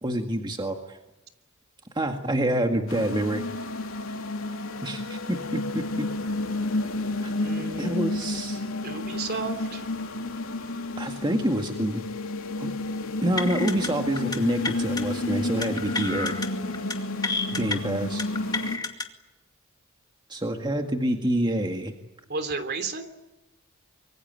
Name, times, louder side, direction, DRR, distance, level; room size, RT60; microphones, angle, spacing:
voice 1, 0.0-1.0 1.9-3.4 4.8-6.1 7.2-7.3 7.8-8.6 11.0-12.0 12.6-12.7 13.2-16.3 17.5-18.2 20.3-21.9, right 1 dB, 20° right, 4 dB, 1.9 m, -27 dB
sound 1, 2.9-18.8, left 2 dB, 85° left, 2.9 m, -31 dB
voice 2, 7.4-8.3 8.8-9.9 22.3-23.1, right 3 dB, 50° right, 9 dB, 3.3 m, -33 dB
sound 2, 13.4-13.9 14.2-14.4 14.6-15.0 15.6-16.5 16.7-16.9 17.2-17.8 18.2-19.0, left 3 dB, 20° left, 2.3 m, -30 dB
25.5 x 24.0 x 9.1 m, 0.98 s
head